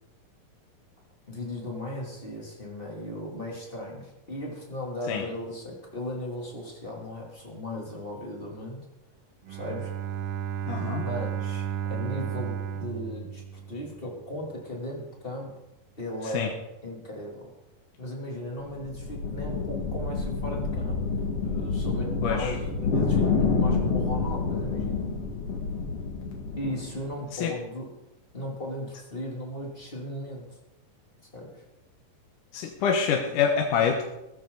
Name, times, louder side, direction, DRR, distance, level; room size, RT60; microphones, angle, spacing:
voice 1, 1.3-8.8 9.5-9.9 10.7-15.5 15.9-16.5 16.8-17.5 18.0-21.0 21.4-25.0 26.6-27.9 28.3-30.6 31.3-31.6, left 1 dB, 15° left, -2 dB, 2.8 m, -37 dB
Bowed string instrument, 9.5-14.2, right 9 dB, 75° right, 2.7 m, -33 dB
voice 2, 10.7-11.0 16.3-16.5 22.2-22.5 27.4-27.5 32.5-34.0, left 6 dB, 70° left, 1 dB, 2.6 m, -25 dB
sound 1, 18.6-27.1, left 4 dB, 45° left, 2.7 m, -28 dB
16.5 x 14.0 x 4.0 m, 0.95 s
omnidirectional pair, 3.9 m